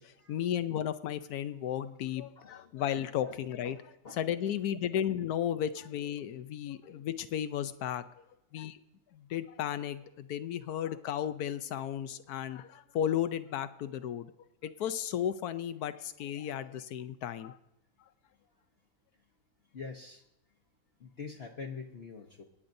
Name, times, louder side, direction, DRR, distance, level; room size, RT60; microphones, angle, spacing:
voice 1, 0.0-3.8 4.1-8.0 8.5-8.8 9.1-14.3 14.6-17.6, left 10 dB, 80° left, 12 dB, 1.2 m, -34 dB
voice 2, 2.4-2.7 3.2-3.4 3.6-3.7 4.0-4.2 19.7-20.2 21.0-22.4, left 5 dB, 45° left, 0 dB, 1.1 m, -44 dB
27.0 x 10.0 x 2.7 m, 0.86 s
omnidirectional pair, 1.6 m